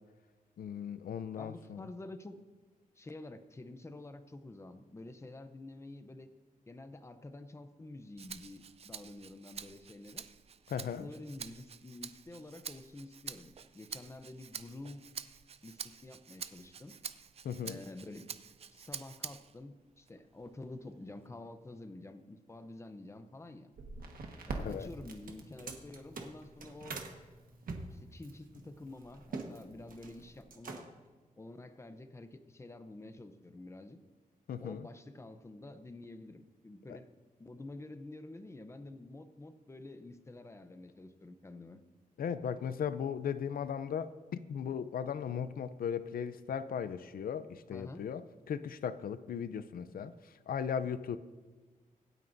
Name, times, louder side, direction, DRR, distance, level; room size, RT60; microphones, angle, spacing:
voice 1, 0.6-1.9 10.7-11.1 17.4-17.8 24.6-24.9 34.5-34.9 36.9-37.0 42.2-48.2 48.5-51.2, left 7 dB, 85° left, 0.5 m, -37 dB
voice 2, 1.4-2.4 3.0-6.3 6.7-10.3 10.8-15.0 15.6-16.9 17.6-18.3 18.7-23.7 24.5-27.0 27.9-30.9 31.4-34.0 34.6-37.1 37.4-41.8 47.7-48.0, left 2 dB, 20° left, 0.6 m, -49 dB
Rattle (instrument), 8.2-19.6 20.1-21.3, right 7 dB, 45° right, 0.4 m, -48 dB
Crackle, 23.7-30.4, right 2 dB, 85° right, 1.5 m, -48 dB
sound 1, 25.0-27.1 27.6-29.5 29.8-30.2 30.5-31.1, right 4 dB, 70° right, 1.3 m, -44 dB
25.0 x 9.1 x 2.6 m
wide cardioid pair, 170°, 15 cm